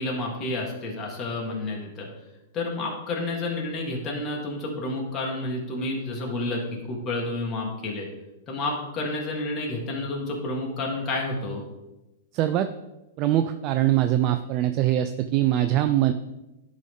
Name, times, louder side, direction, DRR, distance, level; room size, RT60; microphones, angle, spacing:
voice 1, 0.0-2.1 2.5-6.6 6.9-8.1 8.5-11.6, left 2 dB, 30° left, -2 dB, 1.8 m, -30 dB
voice 2, 12.3-12.7 13.2-16.1, right 12 dB, 40° right, 9 dB, 0.4 m, -22 dB
11.0 x 3.8 x 3.7 m, 0.99 s
hypercardioid pair, 120°, 0 cm